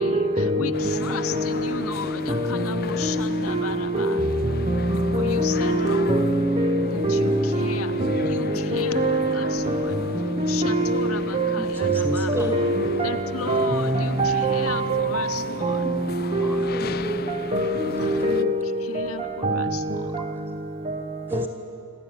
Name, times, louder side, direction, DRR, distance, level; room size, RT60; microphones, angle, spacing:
voice 1, 0.0-4.2 5.1-6.3 6.9-7.9 8.2-10.0 10.5-12.3 13.0-15.8 18.0-20.2, left 5 dB, 75° left, 0.9 m, -35 dB
sound 1, 0.7-18.4, left 5 dB, 45° left, 0.5 m, -37 dB
voice 2, 3.9-4.3 11.5-12.6 16.4-17.3 20.2-20.4 21.3-21.5, right 1 dB, 10° right, 2.5 m, -33 dB
voice 3, 5.1-7.4 8.2-8.3 8.7-9.4 10.4-13.1 13.5-13.8 14.2-15.3 15.6-16.0 16.4-16.5 17.5-18.6 19.4-19.6, right 1 dB, 30° right, 0.7 m, -23 dB
27.0 x 13.0 x 9.6 m
head